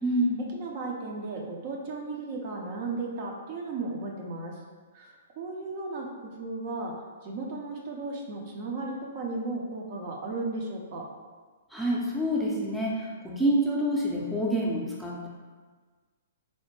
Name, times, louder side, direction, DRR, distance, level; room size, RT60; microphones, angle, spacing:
voice 1, 0.0-0.4 11.7-15.3, equal, ahead, -6 dB, 0.6 m, -27 dB
voice 2, 0.5-4.5 4.9-6.9 7.2-11.1, right 3 dB, 50° right, 0 dB, 0.6 m, -35 dB
4.1 x 2.1 x 3.1 m, 1.4 s
hypercardioid pair, 130°, 0 cm